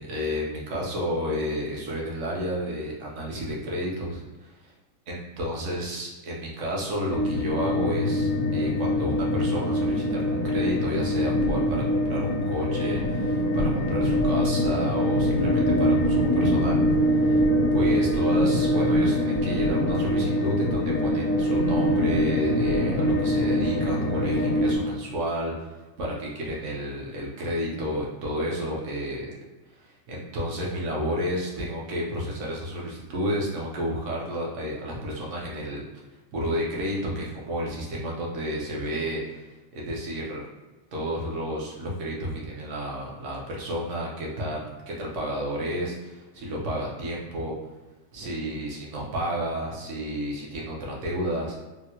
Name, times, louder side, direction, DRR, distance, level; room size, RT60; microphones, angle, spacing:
voice 1, 0.0-4.7 5.1-17.4 17.7-25.7 26.0-29.3 29.7-35.8 36.3-40.4 40.9-47.6 48.1-51.6, equal, 65° right, -3 dB, 1.1 m, -31 dB
sound 1, 7.1-24.8, equal, 75° left, 1.0 m, -23 dB
3.5 x 2.1 x 2.8 m, 1.2 s
omnidirectional pair, 1.4 m